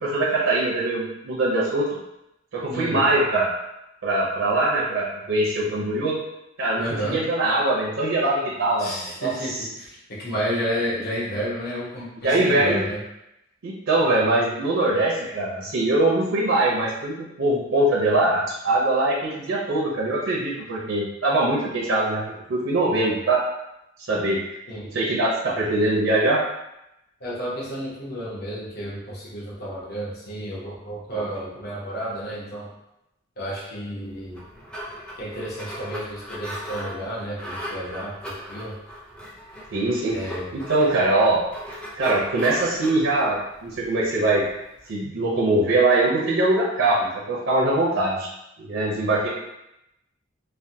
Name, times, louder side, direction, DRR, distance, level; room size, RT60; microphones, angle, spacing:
voice 1, 0.0-1.9 2.5-3.5 4.0-6.1 6.6-9.7 12.2-12.8 13.6-22.2 22.5-23.4 24.1-24.4 24.9-26.4 31.1-31.2 39.7-41.4 42.0-44.4 44.9-48.3 48.6-49.3, right 2 dB, 80° right, -4 dB, 0.6 m, -22 dB
voice 2, 2.7-3.1 6.8-7.2 8.8-13.0 24.7-24.9 27.2-32.7 33.4-34.5 35.1-38.7 40.1-40.5, equal, 55° left, -7 dB, 1.0 m, -31 dB
sound 1, 34.2-44.9, equal, 5° left, 0.5 m, -37 dB
3.3 x 2.1 x 2.7 m, 0.88 s
head